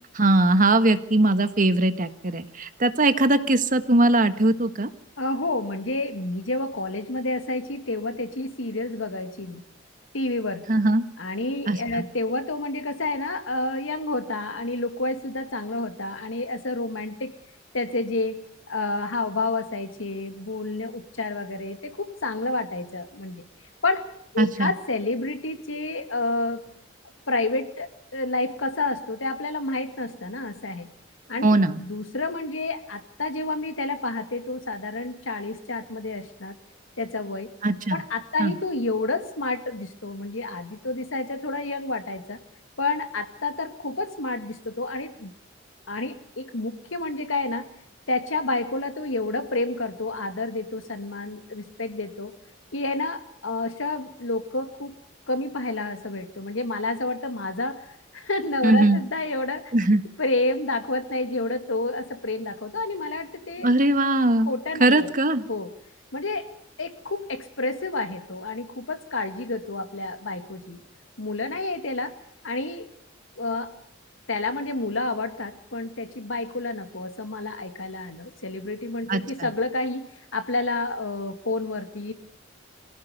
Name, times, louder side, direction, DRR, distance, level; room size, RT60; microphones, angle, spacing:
voice 1, 0.1-4.9 10.7-11.0 11.7-12.0 24.4-24.7 31.4-31.8 37.6-38.0 38.4-38.6 58.6-59.0 59.7-60.0 63.6-64.5 64.8-65.5 79.1-79.5, right 2 dB, 45° right, 10 dB, 1.5 m, -20 dB
voice 2, 5.2-9.6 10.1-10.6 11.2-17.3 17.7-18.4 18.7-23.4 23.8-26.7 27.3-30.9 31.3-36.5 37.0-37.5 37.9-42.4 42.8-45.3 45.9-47.7 48.1-52.3 52.7-54.9 55.3-57.9 58.1-59.7 60.2-63.7 64.5-65.1 65.5-65.7 66.1-66.5 66.8-70.8 71.2-72.2 72.4-72.9 73.4-73.7 74.3-80.1 80.3-82.1, left 2 dB, 90° left, 8 dB, 2.3 m, -29 dB
25.0 x 16.5 x 6.8 m, 0.74 s
head